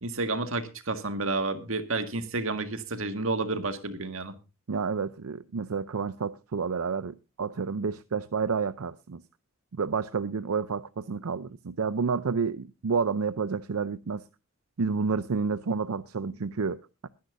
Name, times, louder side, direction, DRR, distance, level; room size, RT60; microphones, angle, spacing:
voice 1, 0.0-4.3, right 3 dB, 70° right, 1.8 m, -30 dB
voice 2, 4.7-9.2 9.7-14.2 14.8-17.1, right 5 dB, 85° right, 0.6 m, -30 dB
22.0 x 10.5 x 2.6 m
head